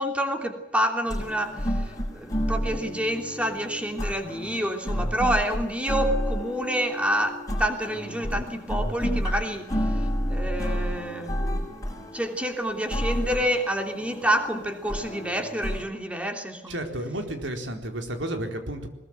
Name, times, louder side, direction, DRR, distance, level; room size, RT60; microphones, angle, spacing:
voice 1, 0.0-16.8, equal, 5° right, 4 dB, 3.2 m, -28 dB
sound 1, 1.0-15.8, equal, 20° left, 6.8 m, -30 dB
voice 2, 16.7-18.9, right 1 dB, 85° right, 5 dB, 4.2 m, -32 dB
21.5 x 21.5 x 7.9 m, 1.0 s
head